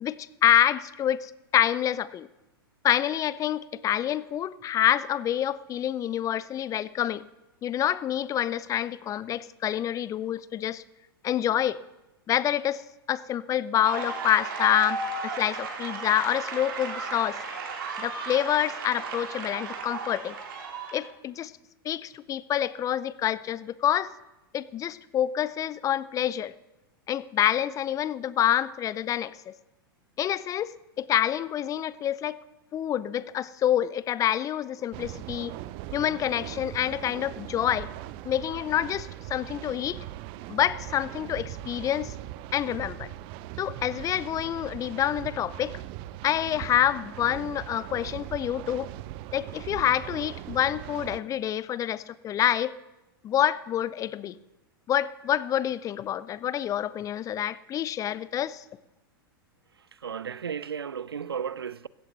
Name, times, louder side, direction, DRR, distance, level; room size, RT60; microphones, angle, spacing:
voice 1, 0.0-2.3 2.8-7.3 7.6-10.8 11.2-11.8 12.3-12.8 13.1-17.4 18.0-20.4 20.9-21.5 21.8-24.1 24.5-26.5 27.1-29.5 30.2-32.4 32.7-35.5 35.9-37.9 38.2-40.0 40.5-42.1 42.5-43.1 43.6-45.8 46.2-48.9 49.3-52.7 53.2-54.3 54.9-58.6, left 11 dB, 25° left, 0.5 m, -27 dB
sound 1, 13.8-21.1, right 4 dB, 70° right, 3.4 m, -35 dB
sound 2, 34.9-51.2, right 15 dB, 45° right, 0.6 m, -40 dB
voice 2, 60.0-61.9, right 7 dB, 90° right, 0.5 m, -34 dB
16.0 x 14.5 x 4.0 m
hypercardioid pair, 100°, 12 cm